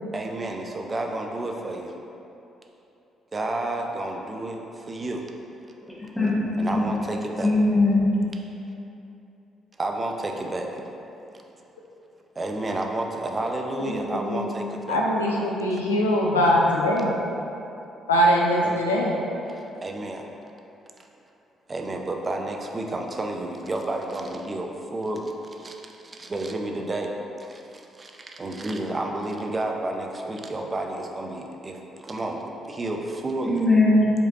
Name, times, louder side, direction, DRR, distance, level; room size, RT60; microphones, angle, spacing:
voice 1, 0.1-1.9 3.3-5.3 6.6-7.5 8.6-8.7 9.8-10.7 12.4-15.0 18.6-18.7 19.5-20.2 21.7-27.1 27.4-33.7, right 2 dB, 30° right, 2 dB, 0.5 m, -31 dB
voice 2, 6.1-7.0 7.4-8.1 33.5-34.1, left 2 dB, 5° left, -8 dB, 1.3 m, -20 dB
voice 3, 13.9-14.5 14.9-17.2 18.1-19.1, equal, 85° left, -3 dB, 0.4 m, -22 dB
4.8 x 2.8 x 3.7 m, 2.9 s
figure-of-eight pair, 45°, 0 cm